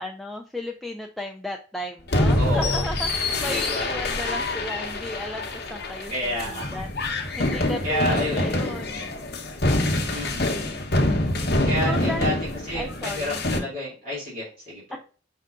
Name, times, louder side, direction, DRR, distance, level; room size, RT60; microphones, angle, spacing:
voice 1, 0.0-6.4 6.7-9.1 10.1-10.7 11.5-12.4 12.7-13.4 14.9-15.0, left 1 dB, ahead, 1 dB, 0.3 m, -35 dB
sound 1, 2.1-13.6, left 1 dB, 55° left, 0.9 m, -25 dB
voice 2, 2.4-2.8 3.4-3.8 6.1-6.7 7.8-8.5 10.1-10.5 11.6-12.3 12.7-14.8, left 1 dB, 45° right, -9 dB, 2.4 m, -29 dB
5.5 x 3.7 x 2.4 m, 0.39 s
head